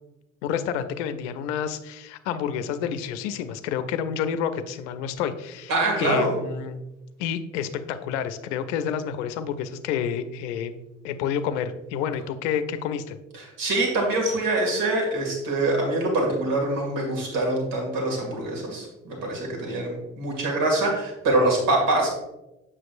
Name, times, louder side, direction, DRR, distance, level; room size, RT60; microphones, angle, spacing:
voice 1, 0.4-5.7 6.0-6.8 7.2-10.8 11.0-13.2, left 8 dB, 70° left, 11 dB, 0.6 m, -29 dB
voice 2, 5.7-6.3 13.4-22.1, right 2 dB, 65° right, 0 dB, 2.2 m, -24 dB
7.6 x 6.1 x 2.5 m, 0.98 s
figure-of-eight pair, 50°, 37 cm